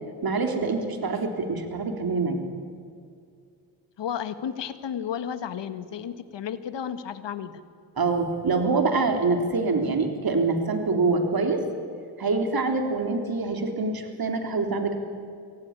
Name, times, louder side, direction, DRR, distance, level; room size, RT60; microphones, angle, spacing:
voice 1, 0.2-2.4 8.0-11.6 12.2-15.0, right 3 dB, 50° right, 5 dB, 3.7 m, -25 dB
voice 2, 4.0-7.5, left 8 dB, 65° left, 12 dB, 1.7 m, -33 dB
25.0 x 16.5 x 9.9 m, 2.3 s
supercardioid pair, 50°, 45 cm